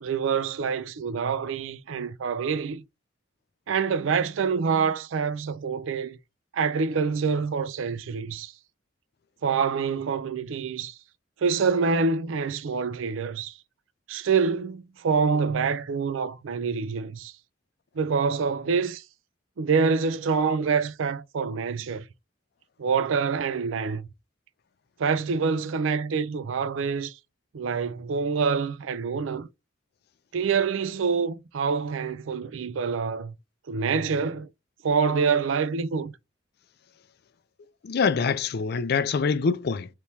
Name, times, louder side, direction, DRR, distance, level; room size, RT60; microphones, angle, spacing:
voice 1, 0.0-2.8 3.7-6.2 6.5-8.5 9.4-11.0 11.4-13.5 14.1-17.3 18.0-19.0 19.6-22.0 22.8-24.1 25.0-27.2 27.5-29.5 30.3-33.3 33.7-34.5 34.8-36.1, right 5 dB, 80° right, 0.4 m, -26 dB
voice 2, 37.8-39.9, left 5 dB, 55° left, 0.4 m, -25 dB
3.4 x 3.0 x 2.7 m
head